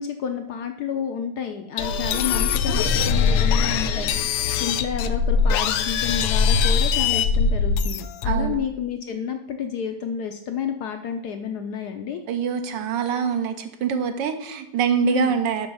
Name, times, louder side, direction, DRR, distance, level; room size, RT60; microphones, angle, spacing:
voice 1, 0.0-4.1 4.6-12.2 15.0-15.3, left 7 dB, 70° left, 6 dB, 1.0 m, -30 dB
sound 1, 1.8-8.6, left 5 dB, 90° left, 1.4 m, -22 dB
voice 2, 8.3-8.6 12.3-15.7, right 7 dB, 70° right, 8 dB, 1.3 m, -24 dB
6.8 x 5.9 x 5.4 m, 0.84 s
omnidirectional pair, 2.2 m